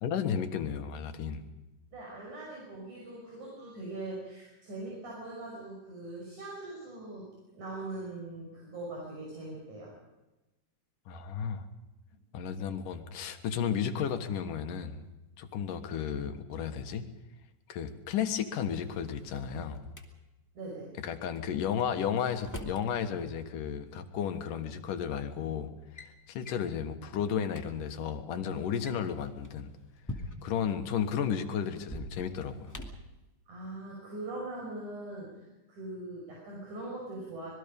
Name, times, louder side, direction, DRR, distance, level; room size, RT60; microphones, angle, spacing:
voice 1, 0.0-1.4 11.1-11.6 12.3-15.1 15.4-17.1 17.7-19.8 21.0-25.7 26.0-29.7 30.4-32.7, left 8 dB, 85° left, 7 dB, 3.1 m, -33 dB
voice 2, 1.9-9.9 20.5-20.9 33.5-37.5, right 2 dB, 65° right, -3 dB, 7.4 m, -41 dB
Drawer open or close, 18.7-20.0 21.7-22.9 24.2-24.3 25.1-25.3 25.7-26.1 26.4-26.7 27.2-27.3 27.5-27.6 28.6-30.6 31.8-33.1, left 1 dB, 5° left, 1.6 m, -44 dB
25.5 x 21.0 x 5.3 m, 1.0 s
omnidirectional pair, 3.7 m